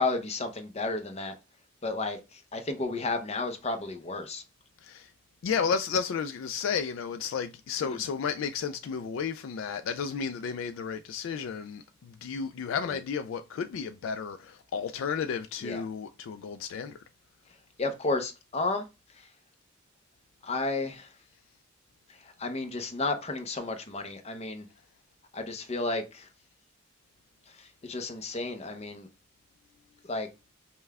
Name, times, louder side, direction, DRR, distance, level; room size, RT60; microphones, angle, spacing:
voice 1, 0.0-1.3 1.8-4.4 7.8-8.0 12.9-13.0 15.6-15.8 17.8-18.8 19.2-19.3 20.4-21.1 22.2-24.7 25.3-26.3 27.5-29.1 30.0-30.3, left 3 dB, 30° left, 0.6 m, -32 dB
voice 2, 4.8-5.1 5.4-17.0, left 6 dB, 65° left, 0.3 m, -32 dB
5.4 x 2.2 x 3.4 m
head